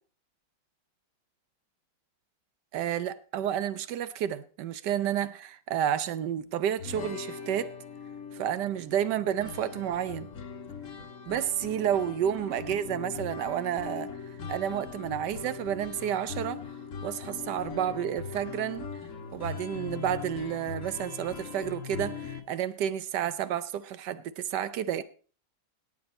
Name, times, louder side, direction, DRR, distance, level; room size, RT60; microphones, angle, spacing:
voice 1, 2.7-7.7 8.3-10.3 11.3-14.1 14.5-16.6 17.0-18.9 19.3-25.0, right 10 dB, 70° right, 1.2 m, -30 dB
sound 1, 6.8-22.4, left 5 dB, 45° left, 1.3 m, -40 dB
17.0 x 8.7 x 4.2 m
omnidirectional pair, 2.1 m